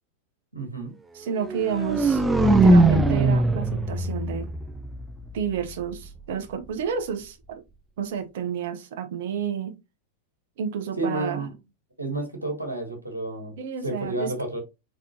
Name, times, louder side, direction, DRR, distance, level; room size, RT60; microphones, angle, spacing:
voice 1, 0.5-0.9 11.0-11.5 12.0-13.6 13.8-14.6, right 2 dB, 80° right, 1.6 m, -30 dB
voice 2, 1.1-4.5 5.3-7.6 8.0-9.7 10.6-11.5 13.6-14.3, right 7 dB, 55° right, 0.8 m, -30 dB
sound 1, 1.5-5.5, right 2 dB, 10° right, 0.5 m, -20 dB
3.6 x 3.6 x 2.7 m
figure-of-eight pair, 90°, 0 cm